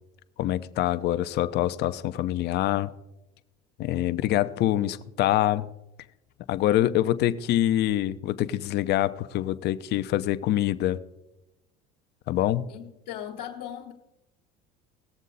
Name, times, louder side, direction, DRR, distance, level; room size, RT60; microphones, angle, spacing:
voice 1, 0.4-2.9 3.8-5.7 6.5-11.0 12.3-12.7, left 13 dB, 55° left, 0.7 m, -25 dB
voice 2, 12.7-13.9, left 10 dB, 85° left, 1.4 m, -38 dB
18.5 x 7.4 x 4.0 m
hypercardioid pair, 75°, 20 cm